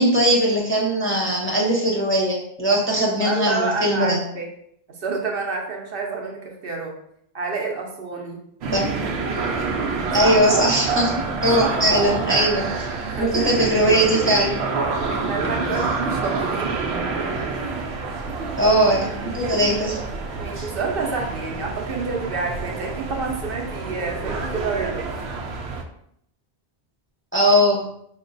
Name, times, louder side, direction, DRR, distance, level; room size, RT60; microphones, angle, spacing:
voice 1, 0.0-4.2 8.7-8.9 10.1-14.6 18.6-20.0 20.6-20.7 27.3-27.9, equal, 15° left, -3 dB, 0.6 m, -20 dB
voice 2, 3.2-4.5 5.0-6.9 7.3-8.4 10.2-10.3 11.6-11.9 13.1-13.4 15.1-16.7 17.4-17.9 19.6-19.7 20.4-25.1, right 4 dB, 65° right, 0 dB, 1.0 m, -28 dB
sound 1, 8.6-25.8, right 4 dB, 90° right, 0.9 m, -27 dB
4.8 x 2.2 x 3.9 m, 0.71 s
omnidirectional pair, 1.0 m